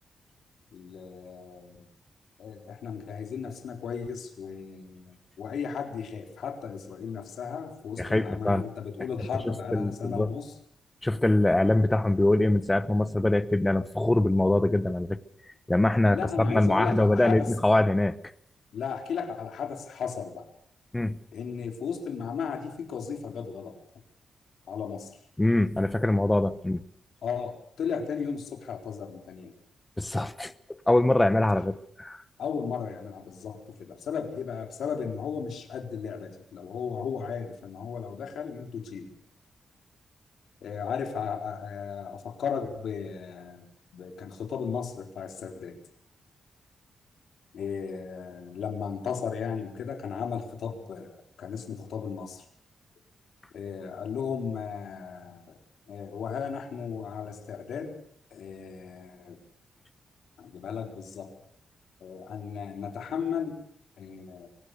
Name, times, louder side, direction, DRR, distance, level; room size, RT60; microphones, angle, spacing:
voice 1, 0.7-1.9 2.4-10.6 16.1-17.5 18.7-20.5 21.3-23.8 24.7-25.1 27.2-29.6 31.5-31.6 32.4-39.1 40.6-45.8 47.5-52.4 53.5-55.6 55.9-58.0 58.3-59.4 60.4-61.3 62.0-63.6 64.0-64.5, left 6 dB, 80° left, 5 dB, 4.1 m, -35 dB
voice 2, 8.0-8.6 9.5-10.3 11.0-15.2 15.7-18.2 20.9-21.2 25.4-26.8 30.0-30.5 30.9-32.2, left 1 dB, 10° left, 15 dB, 1.1 m, -23 dB
25.0 x 18.5 x 6.8 m, 0.64 s
wide cardioid pair, 125°, 0 cm